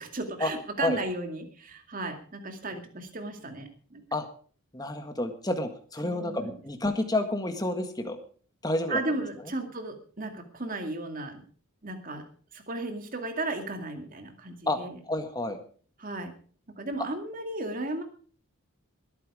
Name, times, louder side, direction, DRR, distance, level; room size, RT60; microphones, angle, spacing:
voice 1, 0.0-4.0 6.0-6.5 8.9-11.4 11.8-12.2 12.5-15.0 16.0-16.3 16.8-18.0, right 2 dB, 40° right, 6 dB, 2.3 m, -35 dB
voice 2, 4.7-8.2 8.6-9.0 14.7-14.8 15.0-15.6, left 2 dB, 15° left, 7 dB, 1.7 m, -29 dB
20.5 x 9.3 x 4.9 m, 0.43 s
head